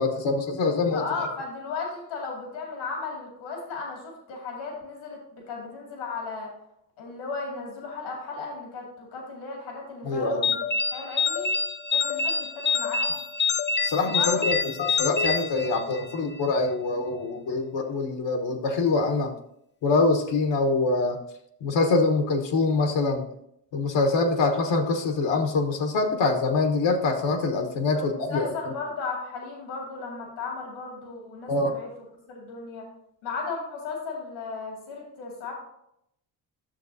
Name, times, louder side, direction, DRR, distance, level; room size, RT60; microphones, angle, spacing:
voice 1, 0.0-1.0 10.0-10.5 13.8-19.3 19.8-21.2 21.6-23.2 23.7-28.7 31.5-31.8, left 3 dB, 65° left, 5 dB, 1.2 m, -24 dB
voice 2, 0.9-6.5 7.0-10.6 10.9-11.5 11.9-13.2 14.0-14.5 27.8-31.9 32.3-32.9 33.2-35.5, left 4 dB, 80° left, 0 dB, 2.4 m, -35 dB
sound 1, 10.4-16.2, left 5 dB, 25° left, 0.6 m, -26 dB
10.5 x 6.6 x 2.7 m, 0.76 s
supercardioid pair, 55°, 47 cm